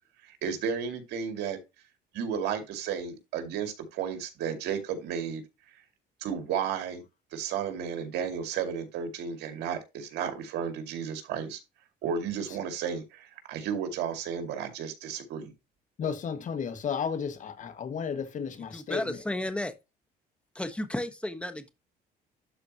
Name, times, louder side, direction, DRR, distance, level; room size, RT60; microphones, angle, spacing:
voice 1, 0.2-1.6 2.1-5.4 6.2-7.0 7.3-11.6 12.0-15.5, right 7 dB, 80° right, 2.2 m, -33 dB
voice 2, 16.0-19.2, left 6 dB, 50° left, 1.8 m, -33 dB
voice 3, 18.7-19.7 20.5-21.7, left 1 dB, 5° left, 1.2 m, -33 dB
12.0 x 4.3 x 2.9 m
cardioid pair, 110°, 17 cm